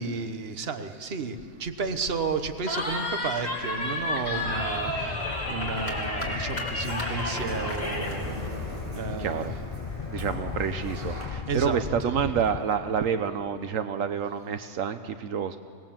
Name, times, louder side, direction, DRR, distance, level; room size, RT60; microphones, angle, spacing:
voice 1, 0.0-8.4 8.9-9.5 11.1-12.1, right 4 dB, 50° right, 8 dB, 1.3 m, -32 dB
Sliding door, 1.9-11.3, equal, 25° right, 5.3 m, -42 dB
Cheering, 2.7-8.2, left 1 dB, 30° left, 3.1 m, -31 dB
Animal, 4.4-12.6, left 6 dB, 55° left, 0.4 m, -37 dB
voice 2, 9.2-9.5 10.1-15.6, right 7 dB, 75° right, 9 dB, 1.1 m, -28 dB
24.5 x 19.0 x 7.5 m, 2.1 s
omnidirectional pair, 1.4 m